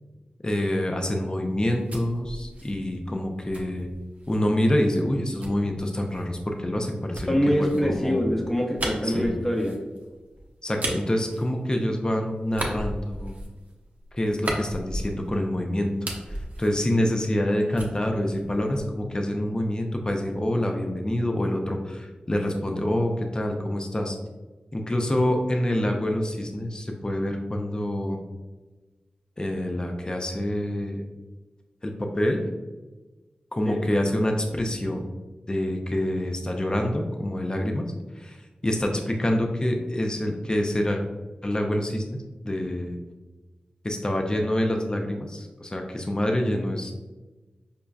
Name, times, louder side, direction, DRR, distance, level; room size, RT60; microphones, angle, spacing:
voice 1, 0.4-3.9 4.3-8.2 9.0-9.3 10.6-13.3 14.1-15.9 16.3-24.2 24.7-28.2 29.4-31.0 31.8-32.4 33.5-35.0 35.5-37.9 38.2-41.0 41.4-43.0 43.8-46.9, left 1 dB, 25° left, 2 dB, 0.5 m, -26 dB
sound 1, 1.5-4.5 5.4-12.1 12.5-15.5 15.8-17.5 17.8-19.1, right 1 dB, 55° right, 0.6 m, -36 dB
voice 2, 7.3-9.8 33.7-33.8, equal, 10° left, -1 dB, 0.8 m, -24 dB
5.1 x 2.2 x 2.3 m, 1.2 s
cardioid pair, 45°, 3 cm